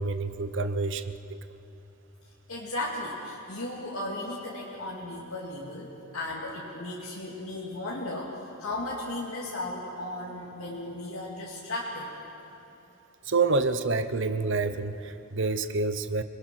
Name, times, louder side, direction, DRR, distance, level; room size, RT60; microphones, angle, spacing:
voice 1, 0.0-1.4 13.2-16.2, right 3 dB, 60° right, 11 dB, 0.9 m, -28 dB
voice 2, 2.5-12.1, left 1 dB, 90° left, -4 dB, 2.4 m, -35 dB
27.0 x 19.5 x 6.2 m, 3.0 s
head